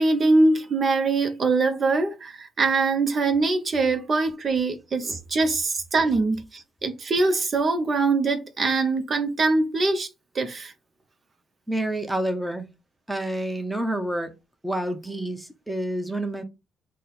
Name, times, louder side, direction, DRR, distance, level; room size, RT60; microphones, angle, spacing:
voice 1, 0.0-10.1 10.3-10.7, right 3 dB, 40° right, 0.6 m, -23 dB
voice 2, 11.7-12.7 13.1-14.3 14.6-16.4, right 1 dB, 5° right, 0.8 m, -28 dB
4.1 x 2.1 x 4.0 m
cardioid pair, 90°, 0 cm